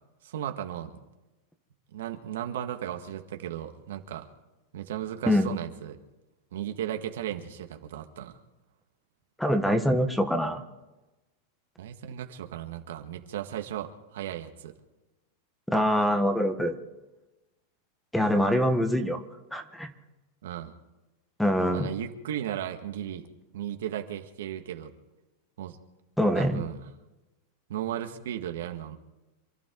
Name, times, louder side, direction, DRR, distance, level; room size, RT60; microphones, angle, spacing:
voice 1, 0.2-1.0 1.9-4.3 4.7-6.0 6.5-8.4 11.8-14.7 20.4-20.7 21.7-23.2 23.5-24.9 25.6-25.8 26.4-26.8 27.7-29.0, right 11 dB, 80° right, 5 dB, 1.9 m, -35 dB
voice 2, 9.4-10.6 15.7-16.7 18.1-19.2 19.5-19.9 21.4-21.9 26.2-26.6, equal, ahead, 8 dB, 1.4 m, -24 dB
27.5 x 12.5 x 4.0 m, 1.0 s
supercardioid pair, 145°, 0 cm